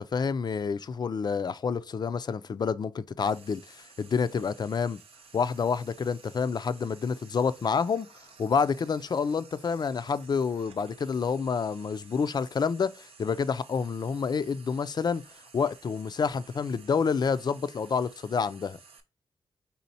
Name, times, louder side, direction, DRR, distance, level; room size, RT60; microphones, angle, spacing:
voice 1, 0.0-5.0 5.3-8.1 8.4-15.2 15.5-18.8, left 5 dB, 45° left, 0.3 m, -28 dB
Frying (food), 3.2-19.0, right 5 dB, 80° right, 0.7 m, -54 dB
4.1 x 3.8 x 2.7 m
cardioid pair, 80°, 10 cm